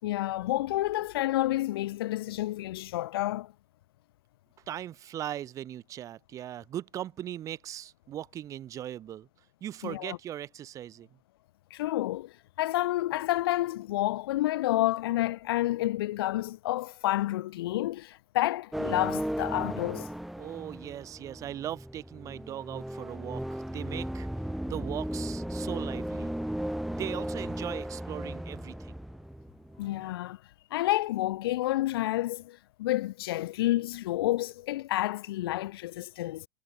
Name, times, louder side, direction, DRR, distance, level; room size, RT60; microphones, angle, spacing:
voice 1, 0.0-3.5 9.8-10.2 11.7-20.1 29.8-30.4 30.7-36.5, left 16 dB, 70° left, 2.9 m, -29 dB
voice 2, 4.7-9.3 9.6-11.1 20.4-24.3 24.6-26.3 26.9-29.0, right 11 dB, 25° right, 3.3 m, -39 dB
sound 1, 18.7-30.1, equal, ahead, 1.9 m, -36 dB
supercardioid pair, 160°, 13 cm